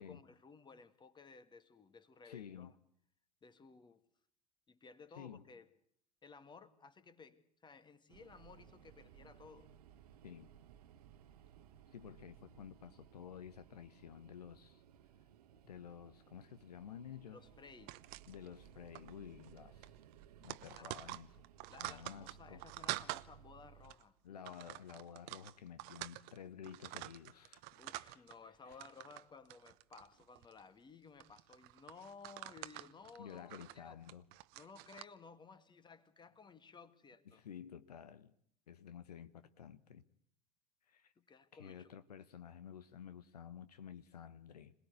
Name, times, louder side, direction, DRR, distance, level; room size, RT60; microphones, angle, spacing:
voice 1, 0.0-2.7 3.4-4.0 4.7-5.7 6.2-9.7 17.2-18.0 20.8-20.9 21.7-24.2 27.8-34.0 34.5-37.4 41.2-41.9, left 5 dB, 20° left, 2.1 m, -57 dB
voice 2, 2.2-2.7 5.1-5.5 10.2-10.5 11.9-14.8 15.6-17.4 18.3-20.0 20.4-21.3 21.8-22.6 24.2-27.6 28.1-28.2 28.7-28.8 33.2-34.2 37.3-38.4 38.7-40.0 40.9-41.1 41.5-44.7, left 8 dB, 75° left, 1.0 m, -52 dB
sound 1, 8.1-23.9, right 9 dB, 70° right, 1.2 m, -61 dB
sound 2, 17.9-18.7 18.9-19.1 19.4-19.6 19.8-23.3 23.8-24.0 24.4-26.4 26.6-28.3 28.7-29.2 29.5-30.6 31.2-35.0, right 20 dB, 50° right, 1.0 m, -47 dB
26.5 x 19.0 x 8.2 m
figure-of-eight pair, 75°, 20 cm